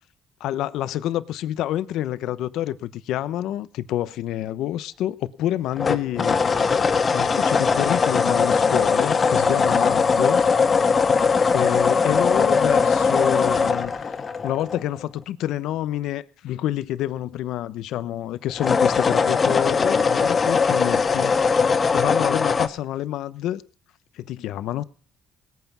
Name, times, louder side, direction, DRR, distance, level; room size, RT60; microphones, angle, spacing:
voice 1, 0.4-6.4 7.1-10.4 11.5-14.2 14.4-21.3 21.9-23.6 24.1-24.8, left 13 dB, 80° left, 0.9 m, -28 dB
sound 1, 5.8-15.0 18.5-22.7, left 5 dB, 35° left, 1.6 m, -20 dB
19.0 x 9.4 x 6.0 m
cardioid pair, 90°, 0 cm